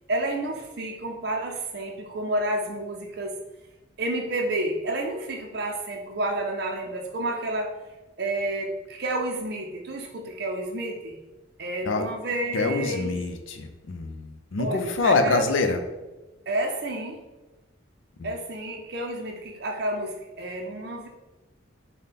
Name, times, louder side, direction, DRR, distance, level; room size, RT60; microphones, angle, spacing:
voice 1, 0.1-3.4 4.0-7.7 8.2-11.2 11.6-13.1 14.6-15.4 16.5-17.2 18.2-21.1, right 1 dB, 55° right, 1 dB, 0.5 m, -30 dB
voice 2, 12.5-15.8 18.2-18.3, left 3 dB, 85° left, 6 dB, 0.5 m, -25 dB
5.4 x 2.2 x 4.1 m, 1.1 s
head